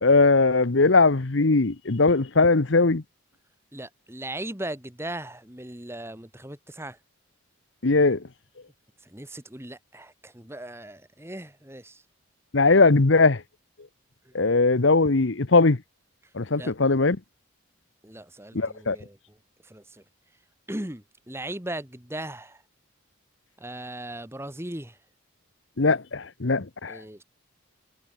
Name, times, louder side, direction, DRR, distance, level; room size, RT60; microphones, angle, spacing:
voice 1, 0.0-3.0 7.8-8.2 12.5-13.4 14.3-15.8 16.4-17.2 18.5-19.0 25.8-27.0, left 3 dB, 60° left, 1.0 m, -20 dB
voice 2, 3.7-7.0 9.0-12.0 14.3-14.4 16.5-16.7 18.0-19.4 19.6-20.0 20.7-22.6 23.6-25.0 26.9-27.2, right 1 dB, 10° right, 2.0 m, -38 dB
head